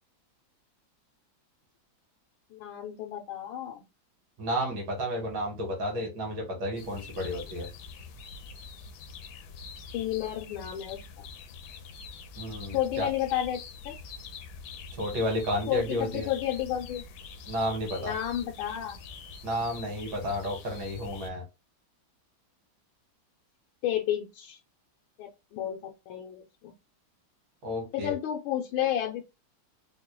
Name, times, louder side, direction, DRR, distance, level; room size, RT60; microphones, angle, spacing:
voice 1, 2.5-3.8 9.9-11.3 12.7-13.6 13.8-13.9 15.7-17.0 18.0-19.0 23.8-24.6 25.2-26.7 27.9-29.2, left 11 dB, 90° left, 1 dB, 1.5 m, -31 dB
voice 2, 4.4-7.7 12.4-13.1 15.0-16.3 17.5-18.1 19.4-21.4 27.6-28.1, equal, 70° right, 0 dB, 2.2 m, -31 dB
sound 1, 6.8-21.3, left 5 dB, 75° left, 1.1 m, -45 dB
4.3 x 2.2 x 3.0 m, 0.26 s
omnidirectional pair, 2.2 m